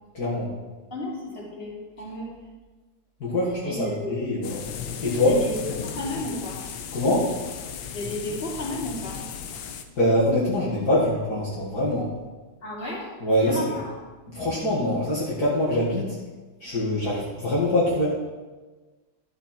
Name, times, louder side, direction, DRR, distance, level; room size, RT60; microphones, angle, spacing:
voice 1, 0.1-0.5 3.2-4.5 5.0-5.4 6.9-7.3 10.0-12.1 13.2-13.6 14.3-16.2 16.6-18.1, left 1 dB, 55° left, -8 dB, 2.3 m, -24 dB
voice 2, 0.9-2.3 3.6-4.2 5.2-6.6 7.9-9.2 12.6-13.1 13.4-13.9, left 1 dB, 30° left, -5 dB, 2.9 m, -33 dB
sound 1, 4.4-9.8, left 7 dB, 85° left, 1.6 m, -36 dB
12.5 x 6.8 x 4.4 m, 1.3 s
omnidirectional pair, 2.1 m